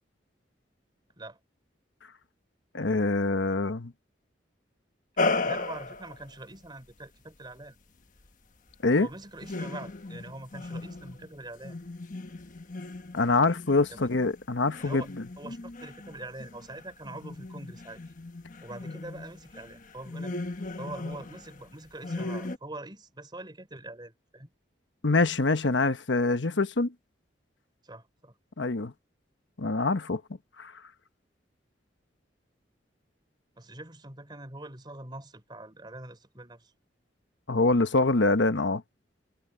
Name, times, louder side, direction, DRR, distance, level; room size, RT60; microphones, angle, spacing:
voice 1, 2.7-3.9 8.8-9.1 13.1-15.0 25.0-26.9 28.6-28.9 29.6-30.2 30.6-30.7 37.5-38.8, left 3 dB, 85° left, 1.1 m, -25 dB
sound 1, 5.2-6.3 9.4-11.3 11.6-21.7 22.0-22.6, left 3 dB, 45° left, 1.3 m, -36 dB
voice 2, 5.2-7.8 9.0-11.8 13.9-14.0 14.8-15.1 15.4-18.0 18.6-20.3 20.8-24.5 27.8-28.3 33.6-36.7, right 2 dB, 25° right, 3.8 m, -43 dB
head